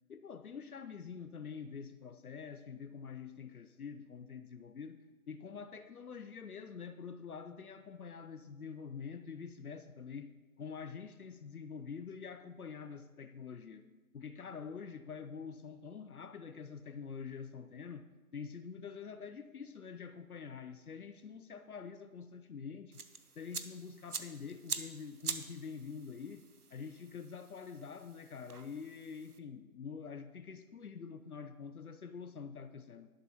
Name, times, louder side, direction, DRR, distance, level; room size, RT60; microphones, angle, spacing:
voice 1, 0.1-13.9 14.1-23.0 23.4-26.4 26.7-33.1, left 6 dB, 75° left, 10 dB, 0.8 m, -46 dB
sound 1, 22.9-29.4, right 5 dB, 85° right, 1.0 m, -45 dB
13.5 x 11.5 x 3.1 m, 1.3 s
figure-of-eight pair, 150°, 44 cm